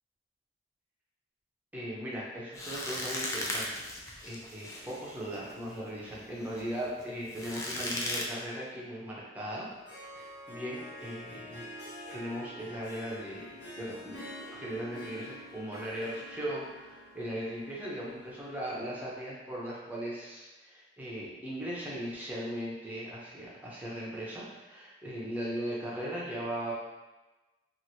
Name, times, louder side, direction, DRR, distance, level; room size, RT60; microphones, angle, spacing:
voice 1, 1.7-9.7 10.2-11.6 12.1-14.2 14.5-26.7, equal, 10° right, -6 dB, 0.7 m, -38 dB
sound 1, 2.6-8.2, left 1 dB, 20° left, 0.4 m, -38 dB
Harp, 9.6-18.6, equal, 75° left, 1.1 m, -47 dB
2.9 x 2.6 x 2.7 m, 1.1 s
head